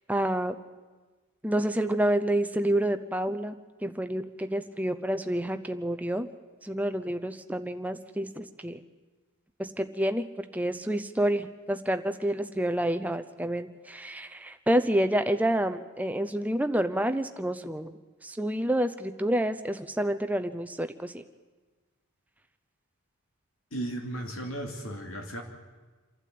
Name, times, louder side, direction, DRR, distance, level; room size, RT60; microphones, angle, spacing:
voice 1, 0.1-0.5 1.4-6.3 6.6-8.8 9.6-17.9 18.2-21.2, right 1 dB, 5° right, 8 dB, 0.7 m, -28 dB
voice 2, 23.7-25.4, right 1 dB, 60° left, 2 dB, 2.7 m, -35 dB
28.0 x 12.0 x 8.7 m, 1.3 s
head